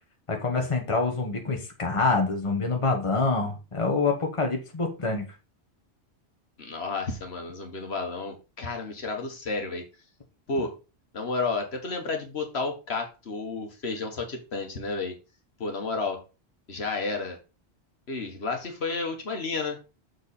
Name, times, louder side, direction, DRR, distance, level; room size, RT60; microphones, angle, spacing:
voice 1, 0.3-5.3, left 3 dB, 30° left, 3 dB, 1.3 m, -26 dB
voice 2, 6.6-9.8 10.5-10.7 11.1-15.2 15.6-16.2 16.7-17.4 18.1-19.8, left 3 dB, 70° left, 3 dB, 1.6 m, -31 dB
6.7 x 4.7 x 4.1 m, 0.30 s
omnidirectional pair, 1.1 m